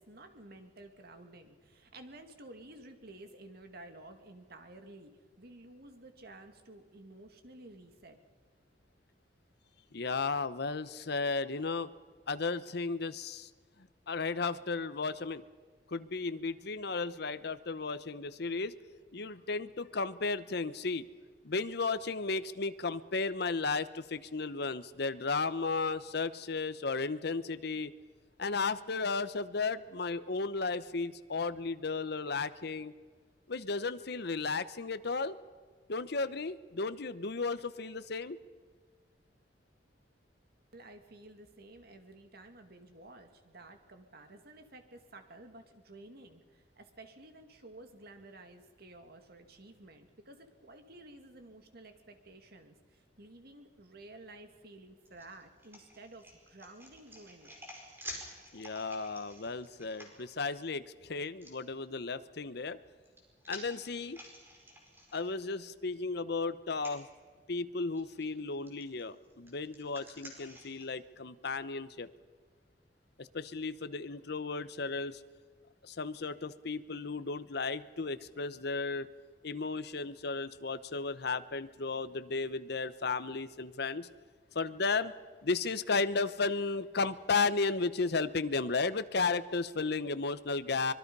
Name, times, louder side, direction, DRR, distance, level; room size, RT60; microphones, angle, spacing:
voice 1, 0.0-5.1 5.4-8.2 40.7-57.6, right 2 dB, 60° right, 6 dB, 2.3 m, -53 dB
voice 2, 9.9-11.9 12.3-13.5 13.8-15.4 15.9-18.7 19.1-21.1 21.4-27.9 28.4-32.9 33.5-35.3 35.9-38.4 58.5-62.8 63.5-64.2 65.1-67.1 67.5-72.1 73.2-75.2 75.8-79.1 79.4-84.1 84.5-85.1 85.4-90.9, left 4 dB, 60° left, 13 dB, 0.9 m, -34 dB
sound 1, 55.0-60.6 61.4-61.5 62.7-65.7 66.1-66.2 66.7-67.0 67.9-68.2 68.7-70.9, equal, 15° right, 5.1 m, -50 dB
25.0 x 21.5 x 5.5 m, 1.5 s
head